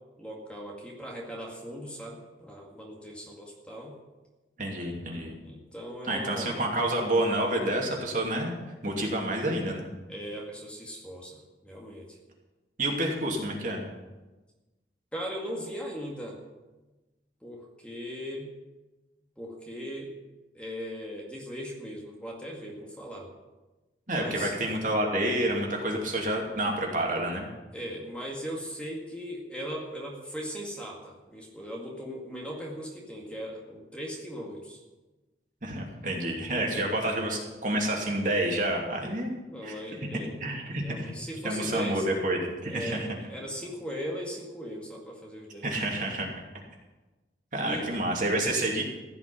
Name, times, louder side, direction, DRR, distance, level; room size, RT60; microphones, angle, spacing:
voice 1, 0.2-4.0 4.9-5.0 5.4-6.5 10.1-12.2 15.1-16.4 17.4-18.5 19.4-20.1 20.5-23.3 24.1-24.5 27.7-34.8 39.5-40.3 40.8-42.1 42.7-45.7 47.7-47.9, equal, 5° left, -2 dB, 2.1 m, -38 dB
voice 2, 4.6-5.3 6.1-8.5 8.8-9.9 12.8-13.8 24.1-27.5 35.6-39.3 39.6-39.7 40.4-41.2 41.4-43.1 45.6-46.3 47.5-48.8, right 1 dB, 45° right, 0 dB, 2.7 m, -29 dB
16.0 x 5.9 x 9.9 m, 1.1 s
head